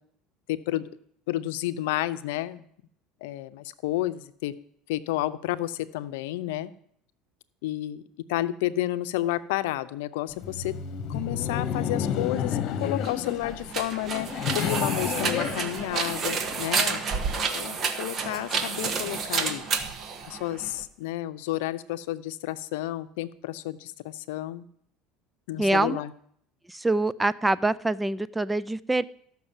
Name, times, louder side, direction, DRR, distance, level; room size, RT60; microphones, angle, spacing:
voice 1, 0.5-0.9 1.3-2.7 3.2-4.5 4.9-6.7 7.6-8.0 8.3-10.8 11.1-19.7 20.3-24.7 25.5-26.1, left 15 dB, 85° left, 13 dB, 0.6 m, -31 dB
Laughter, 10.3-16.6, left 8 dB, 55° left, 1.2 m, -31 dB
sound 1, 13.0-20.8, right 5 dB, 40° right, 1.4 m, -30 dB
voice 2, 25.6-26.0 26.7-29.0, right 2 dB, 10° right, 18 dB, 0.4 m, -25 dB
13.5 x 6.1 x 7.2 m, 0.66 s
supercardioid pair, 115°, 0 cm